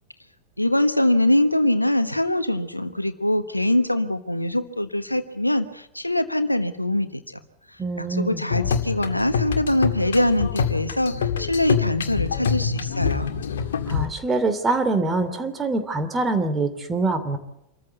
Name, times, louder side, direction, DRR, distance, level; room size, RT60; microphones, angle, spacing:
voice 1, 0.6-7.2 8.0-13.3, left 1 dB, 85° left, 11 dB, 1.3 m, -23 dB
voice 2, 7.8-8.4 13.9-17.4, right 3 dB, 15° right, 9 dB, 2.8 m, -24 dB
sound 1, 8.5-14.1, left 6 dB, 65° left, 1.8 m, -25 dB
26.5 x 14.5 x 8.2 m, 0.82 s
figure-of-eight pair, 90°, 0 cm